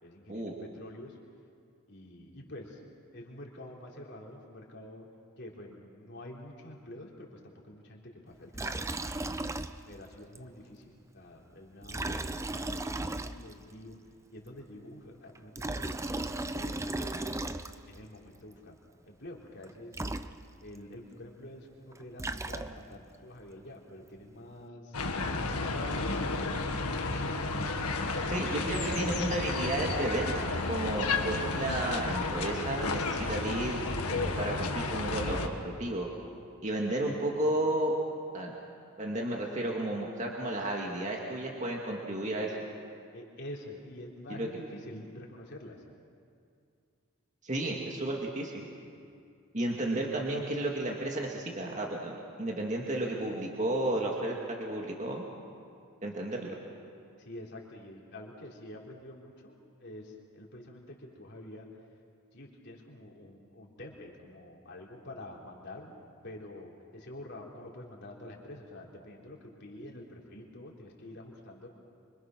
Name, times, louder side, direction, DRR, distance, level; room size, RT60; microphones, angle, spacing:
voice 1, 0.0-1.2 1.9-2.8 3.1-5.1 5.4-8.8 9.9-14.0 14.3-17.4 17.9-18.8 19.1-19.9 20.6-25.0 25.5-26.9 43.1-45.8 57.2-59.5 59.8-61.7 62.3-66.0 66.2-71.7, left 1 dB, 50° left, -2 dB, 3.8 m, -47 dB
Liquid, 8.5-10.1 10.3-10.4 11.8-13.7 15.3-18.0 19.6-19.7 19.9-20.8 21.9-23.0, right 2 dB, 15° right, 0.5 m, -36 dB
sound 1, 24.9-35.5, left 3 dB, 90° left, 1.9 m, -32 dB
voice 2, 28.2-33.8 34.1-36.1 36.6-37.9 38.3-38.5 39.0-42.6 44.3-44.5 47.4-48.6 49.5-55.2 56.0-56.6, right 1 dB, 35° right, -1 dB, 2.2 m, -33 dB
26.0 x 25.5 x 6.2 m, 2.4 s
head